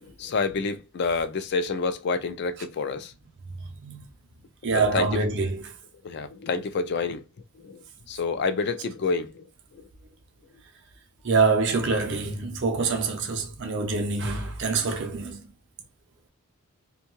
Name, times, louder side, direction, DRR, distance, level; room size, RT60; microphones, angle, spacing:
voice 1, 0.0-3.1 4.7-5.1 6.0-7.2 7.5-9.5 9.7-9.9, left 4 dB, 50° left, 0.4 m, -28 dB
voice 2, 4.6-5.7 11.2-15.4, right 4 dB, 55° right, 0.6 m, -25 dB
2.6 x 2.2 x 2.9 m
head